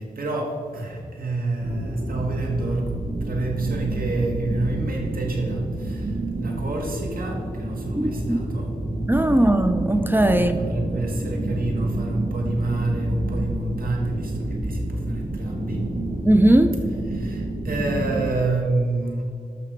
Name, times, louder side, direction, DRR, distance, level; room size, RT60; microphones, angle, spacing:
voice 1, 0.0-8.9 9.3-9.5 10.2-16.2 17.1-19.2, right 2 dB, 80° right, 1.7 m, -28 dB
sound 1, 1.6-18.3, right 1 dB, 50° right, 1.2 m, -29 dB
voice 2, 8.0-8.4 9.1-10.6 16.2-16.8, right 1 dB, 15° right, 0.5 m, -19 dB
12.5 x 6.0 x 4.6 m
wide cardioid pair, 95°, 15 cm